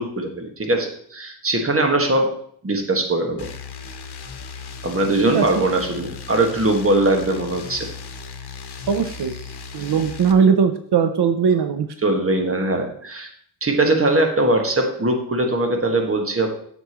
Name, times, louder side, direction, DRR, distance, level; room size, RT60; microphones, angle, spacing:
voice 1, 0.0-2.3 2.6-3.5 4.8-7.9 12.0-13.3 13.6-16.5, right 2 dB, 35° right, 3 dB, 1.6 m, -21 dB
sound 1, 3.4-10.3, left 5 dB, 85° left, 0.9 m, -37 dB
voice 2, 8.9-9.3 9.7-11.9, right 6 dB, 85° right, 8 dB, 0.7 m, -19 dB
9.7 x 7.0 x 3.0 m, 0.62 s
wide cardioid pair, 85°, 39 cm